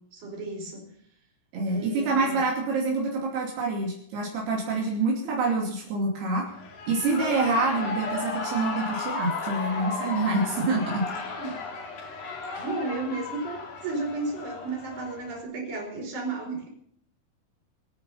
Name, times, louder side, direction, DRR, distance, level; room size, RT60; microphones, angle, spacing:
voice 1, 0.1-0.9 1.7-2.4 11.4-11.6 12.6-16.7, right 3 dB, 50° right, 1 dB, 6.3 m, -33 dB
voice 2, 1.5-6.4 6.9-11.1, right 3 dB, 75° right, -2 dB, 4.8 m, -26 dB
Shout / Cheering, 6.5-15.4, left 3 dB, 55° left, 3.9 m, -35 dB
25.0 x 9.6 x 5.6 m, 0.67 s
omnidirectional pair, 4.7 m